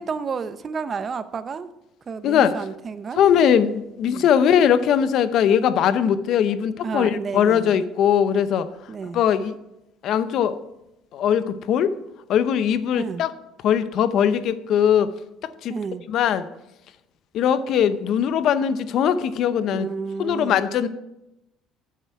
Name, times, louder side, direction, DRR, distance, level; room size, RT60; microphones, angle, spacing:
voice 1, 0.0-1.7 2.1-3.2 4.1-4.3 6.8-7.8 8.9-9.2 12.9-13.2 15.7-16.0 19.7-20.6, right 5 dB, 35° right, 13 dB, 0.6 m, -31 dB
voice 2, 3.2-8.7 9.1-9.6 10.0-10.6 11.1-11.9 12.3-13.3 13.6-15.1 15.4-15.7 16.1-16.5 17.3-19.9 20.2-20.9, left 8 dB, 60° left, 13 dB, 0.7 m, -20 dB
11.5 x 7.4 x 4.7 m, 0.88 s
cardioid pair, 115°, 0 cm